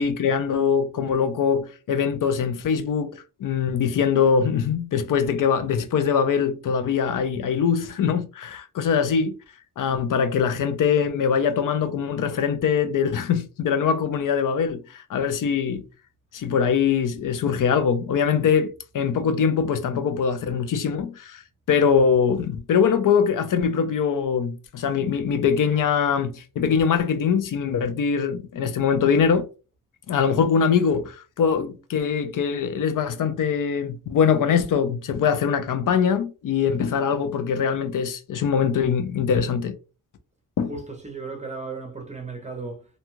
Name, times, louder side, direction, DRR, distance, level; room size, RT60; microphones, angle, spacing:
voice 1, 0.0-3.1 3.4-9.3 9.8-15.8 16.3-21.4 21.7-29.5 30.1-39.8 40.6-40.7, left 6 dB, 70° left, 0.5 m, -22 dB
voice 2, 40.7-42.9, right 4 dB, 20° right, 0.6 m, -35 dB
2.6 x 2.3 x 3.0 m
wide cardioid pair, 145°, 34 cm